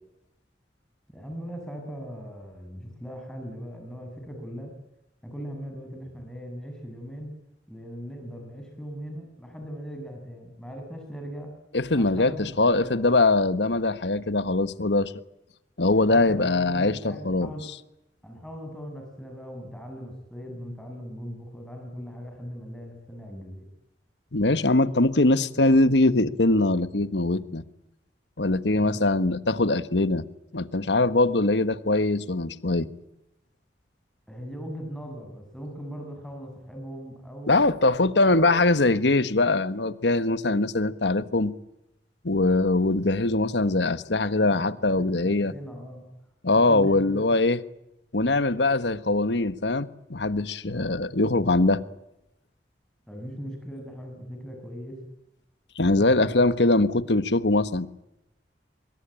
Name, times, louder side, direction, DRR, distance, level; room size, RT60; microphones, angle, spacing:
voice 1, 1.1-4.8 5.2-7.3 7.7-11.5 12.0-13.1 15.9-17.7 18.2-23.7 28.7-29.0 34.3-37.6 38.2-38.5 44.4-46.1 46.5-47.3 53.1-55.0 55.9-56.5, equal, 5° left, 6.8 m, -39 dB
voice 2, 11.7-15.1 15.8-17.5 24.3-27.6 28.4-30.2 30.5-32.9 37.5-41.5 42.2-45.5 46.4-47.6 48.1-51.8 55.8-57.9, left 2 dB, 80° left, 1.4 m, -22 dB
25.0 x 22.5 x 8.9 m
head